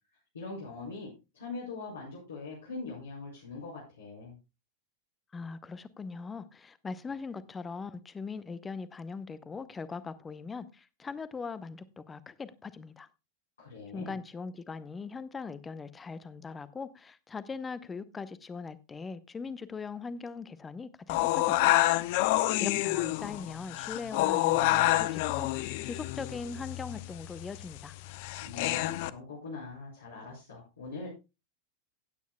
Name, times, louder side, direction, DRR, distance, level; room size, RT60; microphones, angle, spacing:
voice 1, 0.3-4.3 13.6-14.1 28.4-31.1, left 3 dB, 70° left, -7 dB, 4.7 m, -42 dB
voice 2, 5.3-13.1 13.9-21.8 22.6-28.0, left 4 dB, 15° left, 16 dB, 0.8 m, -40 dB
sound 1, 21.1-29.1, left 17 dB, 50° left, 0.5 m, -28 dB
16.0 x 9.3 x 2.3 m, 0.26 s
figure-of-eight pair, 90°, 0 cm